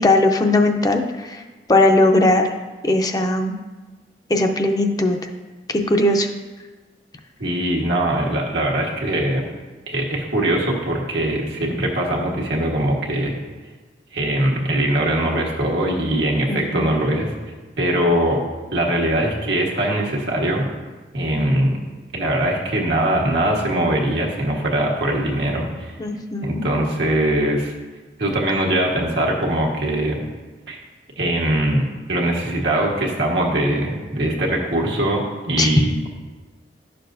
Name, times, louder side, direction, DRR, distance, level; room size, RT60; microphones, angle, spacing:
voice 1, 0.0-1.4 1.7-2.5 2.8-3.5 4.3-5.2 5.7-6.3 16.5-16.9 26.0-26.7 35.6-35.7, left 2 dB, 20° left, 4 dB, 0.5 m, -18 dB
voice 2, 7.4-9.4 9.9-13.4 14.1-17.3 17.8-18.4 18.7-20.6 21.1-21.8 22.1-25.9 26.4-27.7 28.2-30.2 30.7-30.8 31.2-36.1, right 1 dB, 85° right, -2 dB, 1.4 m, -21 dB
11.0 x 6.7 x 2.6 m, 1.3 s
head